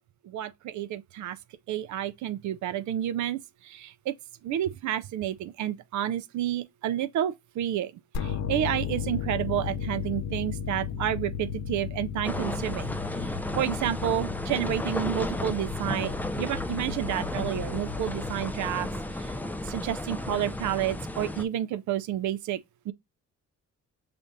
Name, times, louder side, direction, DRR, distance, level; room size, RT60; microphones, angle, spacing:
voice 1, 0.3-1.4 1.7-3.4 4.4-7.9 8.5-12.8 13.6-16.1 16.4-18.9 19.7-22.6 22.9-23.0, right 11 dB, 75° right, 0.5 m, -30 dB
sound 1, 8.1-19.1, left 8 dB, 65° left, 0.6 m, -35 dB
sound 2, 12.2-21.5, left 1 dB, 5° left, 0.4 m, -33 dB
5.0 x 3.4 x 2.6 m
cardioid pair, 90°, 30 cm